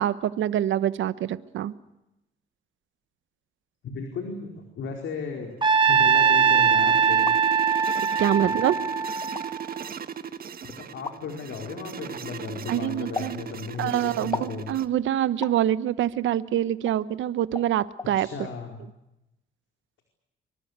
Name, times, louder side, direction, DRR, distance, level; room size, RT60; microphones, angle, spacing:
voice 1, 0.0-1.7 8.2-8.8 12.7-13.4 13.8-18.3, right 11 dB, 75° right, 15 dB, 1.1 m, -25 dB
voice 2, 3.8-5.6 5.9-7.3 8.4-8.5 10.6-14.7 18.1-18.8, left 5 dB, 70° left, 3 dB, 4.7 m, -35 dB
sound 1, 5.4-14.9, right 8 dB, 50° right, 1.6 m, -38 dB
Trumpet, 5.6-9.8, right 6 dB, 25° right, 2.9 m, -21 dB
sound 2, 7.0-7.4 8.3-8.4 9.2-9.5 11.1-11.2 13.2-13.4 14.3-14.6 15.4-15.6 16.9-17.0 17.6-17.7 18.0-18.1, left 3 dB, 20° left, 1.1 m, -34 dB
24.5 x 24.0 x 8.2 m, 0.90 s
cardioid pair, 90°, 20 cm